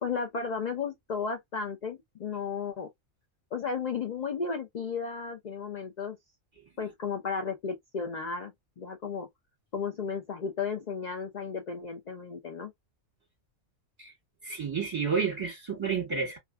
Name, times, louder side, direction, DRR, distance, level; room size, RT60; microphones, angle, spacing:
voice 1, 0.0-2.9 3.5-6.2 6.8-9.3 9.7-12.7, left 5 dB, 55° left, 0.4 m, -34 dB
voice 2, 14.4-16.4, right 5 dB, 20° right, 1.4 m, -30 dB
2.5 x 2.4 x 2.2 m
omnidirectional pair, 1.4 m